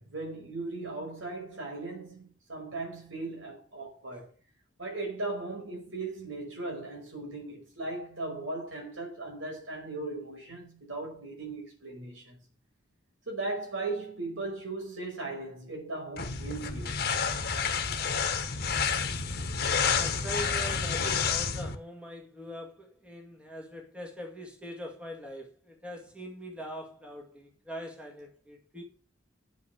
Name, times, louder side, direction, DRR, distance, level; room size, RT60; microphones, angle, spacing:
voice 1, 0.0-4.3 4.8-12.4 13.3-17.1, right 2 dB, 80° right, 5.3 m, -38 dB
sound 1, 16.2-21.8, left 5 dB, 50° left, 1.3 m, -29 dB
voice 2, 20.0-28.8, equal, 5° right, 2.0 m, -42 dB
9.3 x 8.2 x 6.5 m
head